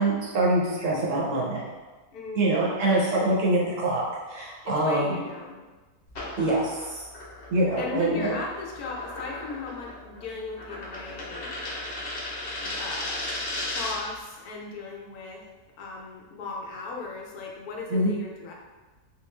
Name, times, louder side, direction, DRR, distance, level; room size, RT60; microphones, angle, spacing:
voice 1, 0.0-1.6 2.3-4.0 4.3-5.2 6.4-7.0 7.5-8.3 17.9-18.1, right 2 dB, 65° right, -4 dB, 0.9 m, -24 dB
voice 2, 2.1-2.6 4.6-5.6 7.8-11.6 12.6-13.4 13.7-15.4 15.8-18.5, left 4 dB, 75° left, -1 dB, 1.1 m, -37 dB
sound 1, 6.1-14.1, left 1 dB, 50° left, 1.0 m, -36 dB
3.7 x 2.4 x 3.2 m, 1.2 s
omnidirectional pair, 1.7 m